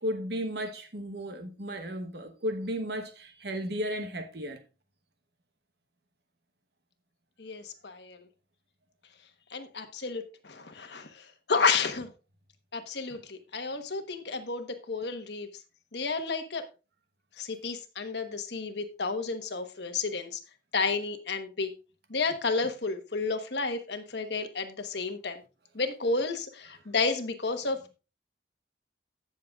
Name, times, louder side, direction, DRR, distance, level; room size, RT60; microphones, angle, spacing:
voice 1, 0.0-4.6, equal, 65° right, 1.1 m, -34 dB
voice 2, 7.4-8.2 9.5-12.1 12.7-15.5 15.9-16.6 17.4-20.4 20.7-21.7 22.1-25.4 25.7-28.0, left 4 dB, 70° left, 1.2 m, -31 dB
18.0 x 6.8 x 2.4 m
head